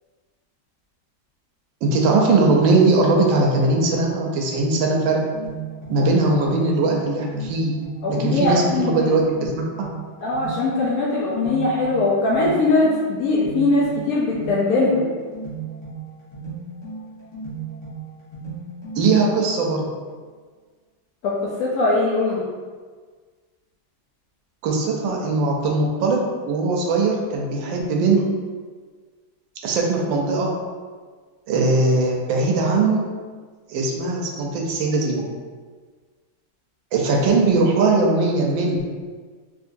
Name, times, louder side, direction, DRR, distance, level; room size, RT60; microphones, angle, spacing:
voice 1, 1.8-5.2 5.9-7.7 8.1-9.9 19.0-19.8 24.6-28.2 29.6-30.5 31.5-33.1 33.7-35.2 36.9-38.8, right 3 dB, 75° right, 0 dB, 1.3 m, -20 dB
sound 1, 5.2-19.8, right 4 dB, 25° left, 0.7 m, -36 dB
voice 2, 8.0-9.1 10.2-15.0 21.2-21.3 21.6-22.5, left 2 dB, 85° left, -6 dB, 0.8 m, -21 dB
3.7 x 2.9 x 2.5 m, 1.5 s
omnidirectional pair, 2.2 m